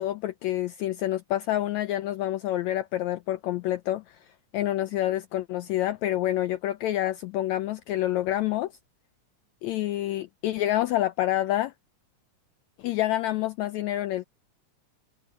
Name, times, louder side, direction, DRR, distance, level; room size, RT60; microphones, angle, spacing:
voice 1, 0.0-4.2 4.5-8.7 9.6-11.7 12.8-14.3, left 14 dB, 80° left, 1.6 m, -27 dB
omnidirectional pair, 3.8 m